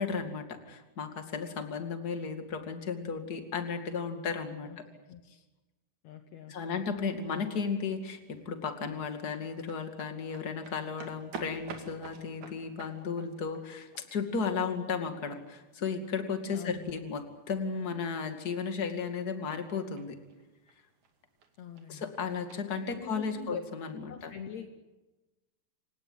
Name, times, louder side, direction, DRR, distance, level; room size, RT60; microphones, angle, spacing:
voice 1, 0.0-4.8 6.5-20.2 21.9-24.3, left 5 dB, 30° left, 7 dB, 1.9 m, -34 dB
voice 2, 6.0-6.8 16.5-17.0 21.6-22.1 22.9-23.6 24.1-24.7, left 8 dB, 75° left, 8 dB, 1.6 m, -44 dB
sound 1, 7.8-23.5, right 4 dB, 50° right, 3.5 m, -52 dB
28.0 x 18.0 x 9.6 m, 1.1 s
omnidirectional pair, 4.7 m